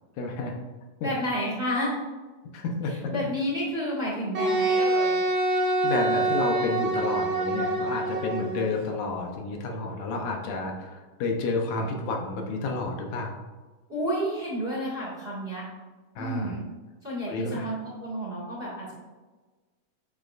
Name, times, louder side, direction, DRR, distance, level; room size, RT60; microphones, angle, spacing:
voice 1, 0.2-0.6 1.0-1.1 2.5-2.9 5.8-13.4 16.2-16.6 17.3-17.8, left 3 dB, 85° left, 1 dB, 2.4 m, -30 dB
voice 2, 1.0-1.9 3.1-5.2 13.9-15.6 16.2-16.6 17.0-19.0, equal, 20° right, -5 dB, 1.9 m, -30 dB
Wind instrument woodwind instrument, 4.3-8.6, right 2 dB, 55° right, 1.5 m, -25 dB
8.7 x 6.4 x 2.5 m, 1.3 s
omnidirectional pair, 3.3 m